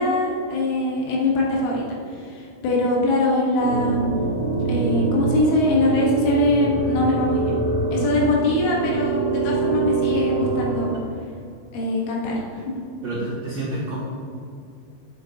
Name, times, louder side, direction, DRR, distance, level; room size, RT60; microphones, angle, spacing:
voice 1, 0.0-1.8 2.2-4.2 4.7-7.5 7.9-10.9 11.7-12.8, left 1 dB, 75° left, -3 dB, 3.4 m, -22 dB
sound 1, 3.6-11.0, right 3 dB, 50° right, 2.3 m, -25 dB
voice 2, 13.0-14.0, right 1 dB, 70° right, -10 dB, 1.6 m, -28 dB
9.3 x 8.0 x 2.7 m, 2.5 s
omnidirectional pair, 5.6 m